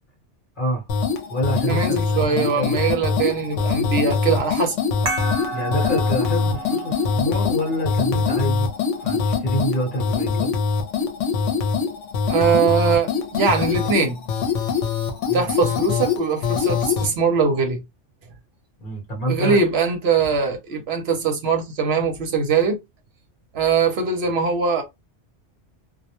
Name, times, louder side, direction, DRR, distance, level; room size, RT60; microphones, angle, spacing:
voice 1, 0.6-0.9 1.3-2.8 5.5-8.7 9.0-10.5 15.3-15.5 18.8-19.6, equal, 45° left, 1.0 m, -27 dB
sound 1, 0.9-17.1, left 5 dB, 85° left, 0.9 m, -23 dB
voice 2, 1.7-4.8 12.3-14.2 15.3-17.8 19.3-22.8 23.5-24.8, right 5 dB, 65° right, 0.8 m, -21 dB
sound 2, 5.1-10.1, right 2 dB, 35° right, 0.4 m, -33 dB
2.3 x 2.1 x 2.8 m
omnidirectional pair, 1.2 m